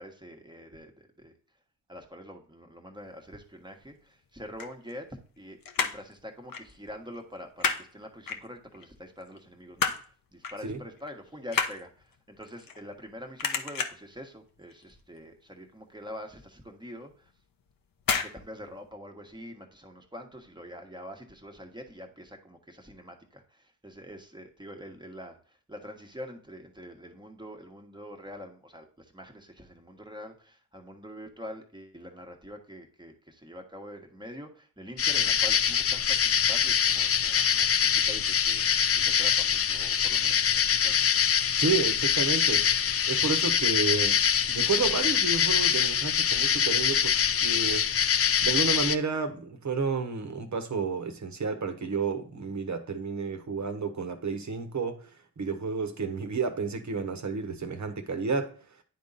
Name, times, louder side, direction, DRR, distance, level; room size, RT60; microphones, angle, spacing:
voice 1, 0.0-1.3 1.9-17.3 18.2-41.1, equal, 10° right, 1.4 m, -45 dB
sound 1, 4.4-5.4 5.6-6.1 6.5-6.7 7.0-7.8 8.3-8.8 9.3-10.1 10.4-10.7 11.0-13.1 13.4-14.1 14.6-14.9 15.2-15.3 15.6-15.7 16.2-16.3 17.1-17.4 18.0-18.3 18.6-18.7, left 5 dB, 55° left, 0.9 m, -30 dB
sound 2, 35.0-49.0, left 8 dB, 35° left, 0.5 m, -24 dB
voice 2, 41.6-44.2 44.5-47.1 47.4-47.9 48.4-55.0 55.4-58.5, right 4 dB, 45° right, 1.2 m, -31 dB
9.6 x 3.7 x 4.1 m
cardioid pair, 55°, 40 cm